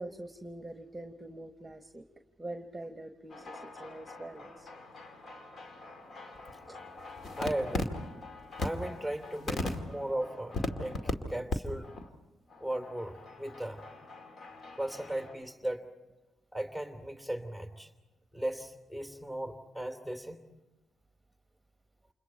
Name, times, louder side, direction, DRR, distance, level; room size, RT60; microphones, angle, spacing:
voice 1, 0.0-2.0 2.4-4.7 6.7-6.8, right 1 dB, 15° right, 7 dB, 1.2 m, -44 dB
sound 1, 3.3-11.1 11.5-11.6 11.8-12.1 12.5-15.3, left 2 dB, 50° left, 2.2 m, -39 dB
voice 2, 7.4-8.0 8.6-11.9 12.6-13.9 14.8-15.9 16.5-17.9 18.3-20.4, right 1 dB, 15° left, 7 dB, 3.1 m, -37 dB
29.5 x 27.5 x 4.5 m, 1.1 s
hypercardioid pair, 40°, 0 cm